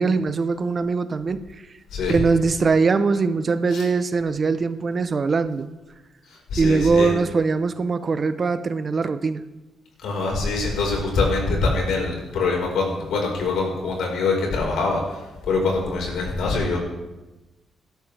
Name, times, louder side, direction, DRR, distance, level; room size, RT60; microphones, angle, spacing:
voice 1, 0.0-1.4 2.1-5.7 6.6-9.4, right 4 dB, 40° right, 12 dB, 0.7 m, -21 dB
voice 2, 6.5-7.1 10.0-15.2 15.5-16.8, left 3 dB, 85° left, -1 dB, 4.6 m, -24 dB
18.5 x 12.5 x 3.4 m, 1.1 s
cardioid pair, 110°, 0 cm